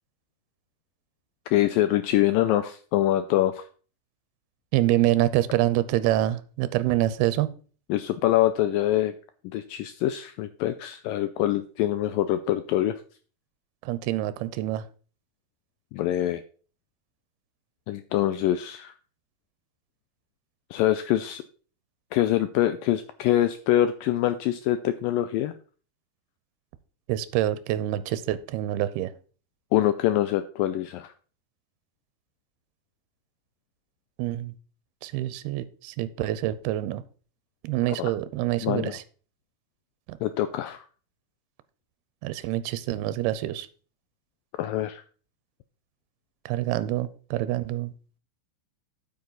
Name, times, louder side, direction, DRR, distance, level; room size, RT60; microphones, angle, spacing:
voice 1, 1.5-3.6 7.9-9.1 9.4-13.0 15.9-16.4 17.9-18.9 20.7-21.4 22.1-25.5 29.7-31.1 38.0-38.1 38.6-39.0 40.2-40.9 44.6-45.0, left 13 dB, 85° left, 11 dB, 2.0 m, -24 dB
voice 2, 4.7-7.5 13.8-14.9 27.1-29.1 34.2-34.5 35.0-37.0 37.6-39.0 40.1-40.2 42.2-43.7 46.5-47.9, right 14 dB, 85° right, 14 dB, 2.6 m, -26 dB
8.9 x 8.6 x 3.9 m, 0.40 s
omnidirectional pair, 4.5 m